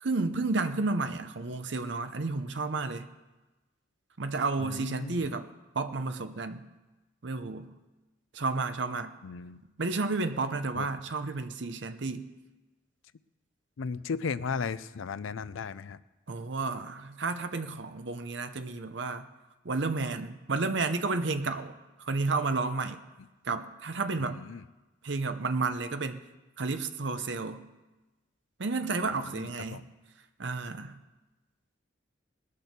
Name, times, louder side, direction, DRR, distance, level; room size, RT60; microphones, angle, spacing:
voice 1, 0.0-3.1 4.2-5.5 5.7-6.7 7.2-7.7 8.3-9.2 9.8-12.3 16.3-19.3 19.6-23.0 23.4-24.4 25.0-26.2 26.6-27.7 28.6-29.8 30.4-31.0, right 3 dB, 60° right, 9 dB, 0.8 m, -31 dB
voice 2, 4.6-5.3 9.2-9.6 10.8-10.9 13.8-16.0 24.2-24.6 29.0-29.9, left 5 dB, 85° left, 16 dB, 0.5 m, -36 dB
19.0 x 6.6 x 6.7 m, 1.1 s
head